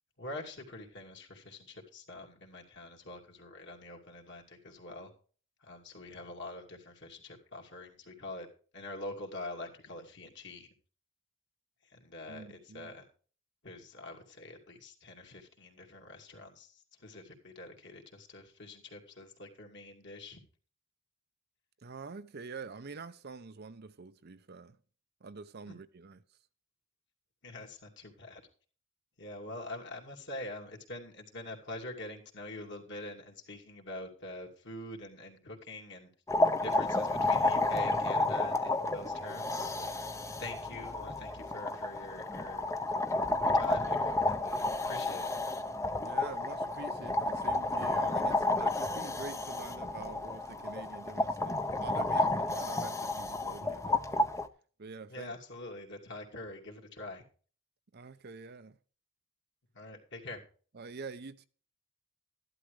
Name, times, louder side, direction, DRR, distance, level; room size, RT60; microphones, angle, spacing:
voice 1, 0.2-5.1 5.6-8.5 8.7-10.7 11.9-13.1 13.6-20.4 25.7-25.8 27.4-28.4 29.2-36.1 36.5-40.0 40.4-42.7 43.4-45.3 55.1-57.2 59.7-60.4, left 2 dB, 50° left, 2.6 m, -45 dB
voice 2, 12.3-12.9 21.8-24.8 25.2-26.2 46.0-54.3 54.8-55.3 57.9-58.8 60.7-61.5, right 4 dB, 45° right, 0.6 m, -46 dB
sound 1, 36.3-54.5, left 2 dB, 15° left, 0.7 m, -31 dB
13.0 x 12.0 x 3.2 m
head